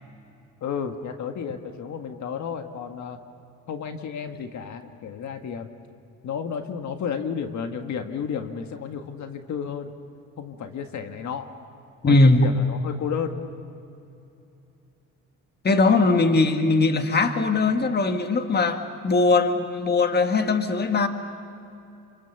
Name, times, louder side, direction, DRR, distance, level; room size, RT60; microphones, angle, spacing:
voice 1, 0.6-3.2 3.7-5.7 6.2-9.9 10.4-11.5 12.0-13.4 15.8-16.0, left 7 dB, 70° left, 6 dB, 1.7 m, -32 dB
voice 2, 12.0-12.4 15.6-21.1, left 3 dB, 35° left, 7 dB, 1.7 m, -20 dB
27.0 x 26.0 x 7.1 m, 2.7 s
cardioid pair, 90°, 30 cm